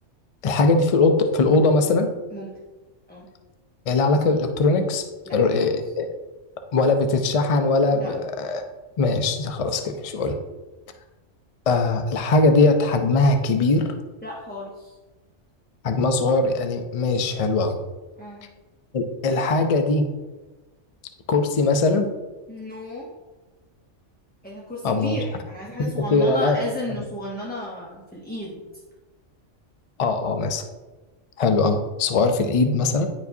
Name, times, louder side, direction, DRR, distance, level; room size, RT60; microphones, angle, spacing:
voice 1, 0.4-2.1 3.9-5.0 5.3-6.1 6.7-8.6 9.0-10.4 11.7-13.9 15.8-17.8 18.9-20.1 21.3-22.1 24.8-25.1 25.8-26.6 30.0-30.6 31.4-33.1, left 3 dB, 55° left, 6 dB, 0.4 m, -20 dB
voice 2, 5.2-5.7 7.9-8.1 14.2-14.9 18.2-18.4 22.5-23.1 24.4-28.6, left 1 dB, 10° left, -5 dB, 0.7 m, -34 dB
10.0 x 4.7 x 2.7 m, 1.2 s
omnidirectional pair, 1.3 m